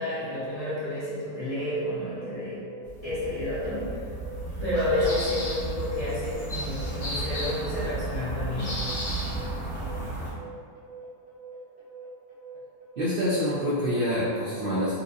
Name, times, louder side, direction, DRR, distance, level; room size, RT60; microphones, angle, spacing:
voice 1, 0.0-2.6 3.0-3.9 4.6-8.7, left 1 dB, 25° left, -12 dB, 1.0 m, -30 dB
sound 1, 1.5-14.1, right 6 dB, 5° right, 0.9 m, -45 dB
sound 2, 2.9-10.3, right 2 dB, 70° left, 1.8 m, -33 dB
sound 3, 4.7-5.5 6.0-6.6 7.6-7.7 8.3-9.9, right 2 dB, 85° right, 1.1 m, -47 dB
voice 2, 13.0-15.0, equal, 65° right, -8 dB, 0.5 m, -26 dB
4.3 x 2.3 x 2.6 m, 2.1 s
omnidirectional pair, 1.6 m